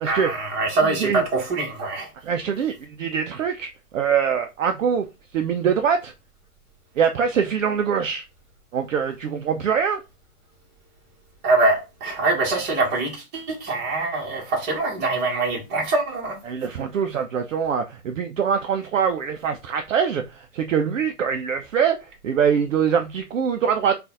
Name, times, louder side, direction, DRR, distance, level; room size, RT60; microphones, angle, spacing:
voice 1, 0.0-2.1 11.4-16.4, right 3 dB, 20° right, 1.3 m, -23 dB
voice 2, 2.2-5.1 5.3-6.1 7.0-8.2 8.7-10.0 16.5-22.0 22.2-23.9, right 7 dB, 55° right, 0.5 m, -23 dB
3.8 x 2.5 x 3.7 m
figure-of-eight pair, 125°, 46 cm